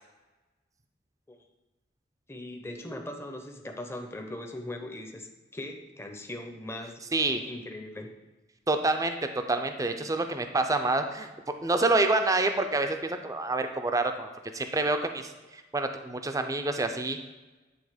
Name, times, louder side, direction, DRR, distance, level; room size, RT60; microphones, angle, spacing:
voice 1, 2.3-5.3 5.5-7.0 7.4-8.1, left 1 dB, 15° left, 3 dB, 0.7 m, -39 dB
voice 2, 7.1-7.4 8.7-11.3 11.6-15.3 15.7-17.2, right 2 dB, 20° right, 6 dB, 0.5 m, -27 dB
9.4 x 3.8 x 4.9 m, 1.1 s
head